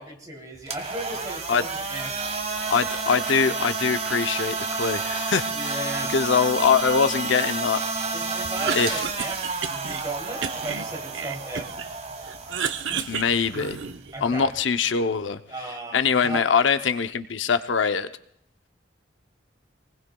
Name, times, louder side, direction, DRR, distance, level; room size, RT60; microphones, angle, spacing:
voice 1, 0.0-2.2 5.5-6.1 8.1-11.7 14.1-14.5 15.5-16.5, right 2 dB, 20° right, 0 dB, 2.9 m, -36 dB
sound 1, 0.6-14.6, right 4 dB, 35° right, 1.4 m, -31 dB
voice 2, 2.7-5.8 6.1-7.8 8.7-9.0 13.1-13.8 14.2-15.4 15.9-18.1, left 6 dB, 85° left, 10 dB, 0.6 m, -23 dB
Cough, 8.4-10.0 10.4-11.9 12.2-14.1, right 6 dB, 85° right, 0.7 m, -31 dB
26.5 x 20.0 x 2.3 m, 0.70 s
head